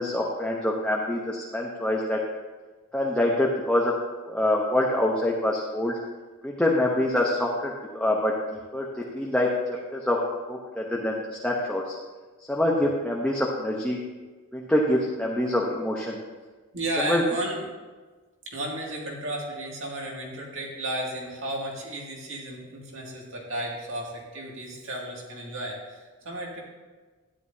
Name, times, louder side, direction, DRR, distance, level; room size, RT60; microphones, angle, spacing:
voice 1, 0.0-2.2 2.9-3.9 4.3-6.0 6.4-8.9 9.1-9.5 9.9-10.2 10.5-12.0 12.5-14.0 14.5-16.2 17.0-17.2, left 1 dB, 5° left, -3 dB, 0.8 m, -25 dB
voice 2, 16.7-17.7 18.5-26.6, right 1 dB, 60° right, -2 dB, 2.2 m, -33 dB
12.5 x 10.5 x 2.7 m, 1.3 s
head